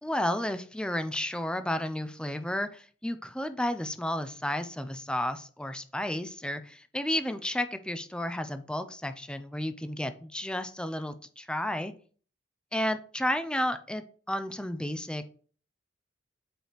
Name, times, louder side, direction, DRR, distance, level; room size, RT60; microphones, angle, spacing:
voice 1, 0.0-11.9 12.7-15.3, left 1 dB, 5° left, 10 dB, 0.5 m, -32 dB
8.9 x 4.7 x 3.4 m, 0.43 s
head